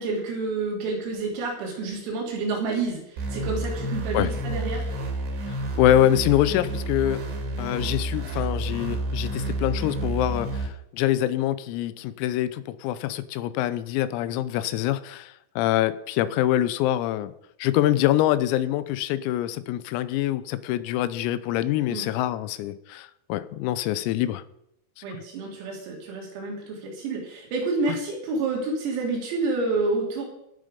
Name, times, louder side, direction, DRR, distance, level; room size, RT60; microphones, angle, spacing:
voice 1, 0.0-4.9 21.9-22.1 25.0-30.3, right 3 dB, 80° right, -1 dB, 6.1 m, -29 dB
sound 1, 3.2-10.7, right 1 dB, 60° right, 4.5 m, -30 dB
voice 2, 5.5-7.2 7.6-17.3 17.6-24.4 25.0-25.2, left 13 dB, 90° left, 14 dB, 3.5 m, -25 dB
18.5 x 7.7 x 5.3 m, 0.79 s
omnidirectional pair, 6.0 m